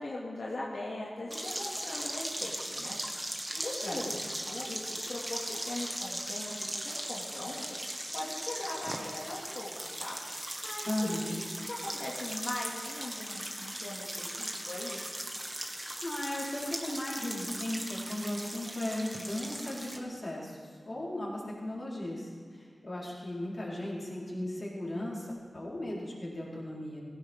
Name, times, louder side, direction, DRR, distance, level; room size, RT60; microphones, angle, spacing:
voice 1, 0.0-3.0 3.5-4.2 4.5-10.2 10.6-15.0, left 2 dB, 90° left, -5 dB, 2.4 m, -40 dB
sound 1, 1.3-20.0, right 1 dB, 15° right, 1.7 m, -38 dB
voice 2, 10.8-11.4 16.0-20.6 20.9-25.3 25.5-27.0, left 1 dB, 45° left, -5 dB, 4.6 m, -36 dB
17.5 x 16.0 x 3.8 m, 2.1 s
wide cardioid pair, 90°, 0 cm